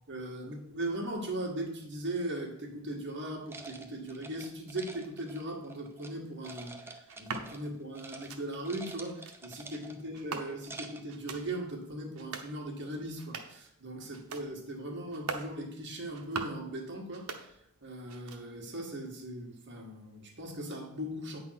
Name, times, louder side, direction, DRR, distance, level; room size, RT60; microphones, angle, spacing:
voice 1, 0.1-21.4, right 1 dB, 55° right, 0 dB, 1.8 m, -39 dB
sound 1, 3.5-6.1 6.4-7.7 7.9-8.3 8.5-10.1 10.5-11.1, right 2 dB, 10° right, 0.6 m, -47 dB
sound 2, 7.1-7.5 8.1-8.4 9.1-9.4 10.1-10.8 11.1-11.4 12.1-12.5 13.1-13.6 14.1-14.5 15.1-15.5 16.1-16.6 17.1-17.8 18.1-18.7, right 4 dB, 70° right, 0.9 m, -42 dB
8.8 x 4.0 x 5.8 m, 0.75 s
head